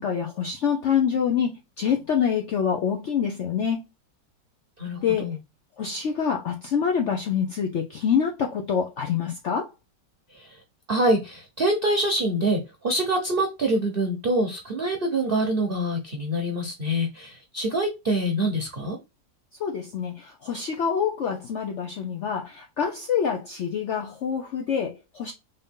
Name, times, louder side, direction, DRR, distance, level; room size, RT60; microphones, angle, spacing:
voice 1, 0.0-3.8 5.0-5.4 5.8-9.7 19.6-25.3, left 7 dB, 75° left, 0.6 m, -26 dB
voice 2, 4.8-5.4 10.3-10.6 10.9-19.0, right 1 dB, 45° right, 0.8 m, -25 dB
3.9 x 2.7 x 3.5 m
omnidirectional pair, 1.9 m